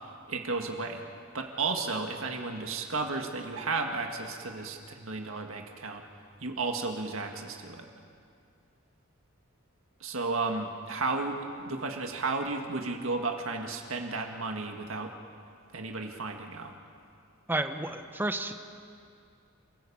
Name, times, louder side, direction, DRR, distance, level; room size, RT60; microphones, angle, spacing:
voice 1, 0.3-1.0 1.3-6.0 6.4-7.9 10.0-15.1 15.7-16.7, right 3 dB, 70° right, 3 dB, 1.9 m, -33 dB
voice 2, 17.5-18.6, right 1 dB, 10° right, 7 dB, 1.0 m, -31 dB
28.5 x 15.0 x 8.6 m, 2.4 s
head